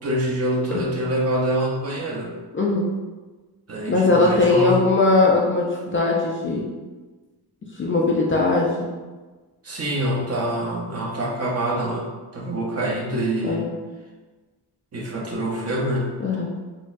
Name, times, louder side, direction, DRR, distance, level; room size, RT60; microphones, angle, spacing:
voice 1, 0.0-2.3 3.7-4.8 9.6-12.1 12.3-13.7 14.9-16.2, right 1 dB, 35° right, -3 dB, 0.6 m, -25 dB
voice 2, 2.5-2.8 3.9-6.7 7.8-8.9 13.4-13.7 16.2-16.5, left 3 dB, 30° left, -3 dB, 0.4 m, -20 dB
3.9 x 2.2 x 2.4 m, 1.3 s
wide cardioid pair, 125°, 41 cm